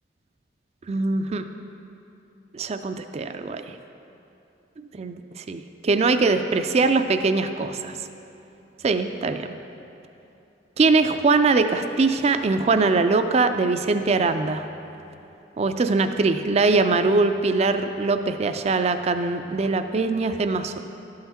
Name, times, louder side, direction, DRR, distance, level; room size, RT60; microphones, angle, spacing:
voice 1, 0.9-1.4 2.5-3.8 4.9-7.9 8.8-9.5 10.8-14.7 15.6-20.8, right 3 dB, 35° right, 9 dB, 0.4 m, -22 dB
12.5 x 5.7 x 4.3 m, 2.9 s
head